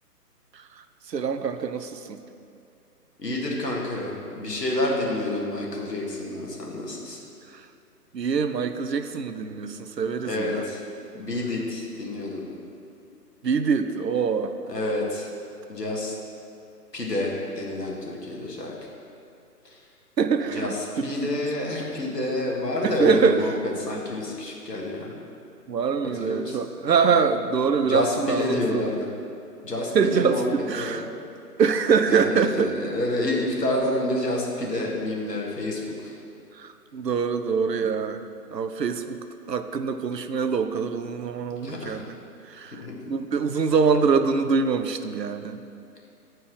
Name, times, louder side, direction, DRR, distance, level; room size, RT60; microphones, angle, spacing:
voice 1, 0.5-2.2 7.5-7.6 8.1-10.6 13.4-14.5 20.2-21.4 22.8-23.5 25.7-28.9 29.9-31.1 31.6-32.7 36.5-38.2 38.5-39.2 39.5-42.1 42.5-45.6, right 5 dB, 85° right, 9 dB, 0.6 m, -24 dB
voice 2, 3.2-7.2 10.2-10.8 11.1-12.5 14.7-15.3 15.7-16.2 16.9-18.9 19.6-19.8 20.5-25.2 26.1-26.6 27.8-29.1 29.6-30.4 30.7-31.0 32.0-36.1 41.6-42.0 42.7-42.9, left 1 dB, 75° left, -2 dB, 1.7 m, -28 dB
8.7 x 4.5 x 4.8 m, 2.5 s
figure-of-eight pair, 140°, 48 cm